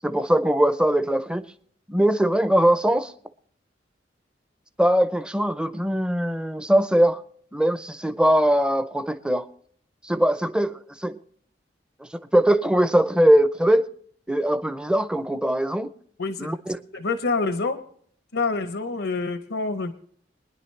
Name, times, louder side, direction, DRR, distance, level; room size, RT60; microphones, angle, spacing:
voice 1, 0.0-1.5 1.9-3.1 4.8-7.2 7.5-9.5 10.0-11.2 12.3-13.8 14.3-15.9 16.4-16.8, right 1 dB, 5° right, 0.5 m, -21 dB
voice 2, 16.2-16.5 16.9-17.8 18.3-19.9, left 3 dB, 85° left, 0.8 m, -26 dB
24.5 x 10.0 x 3.2 m
head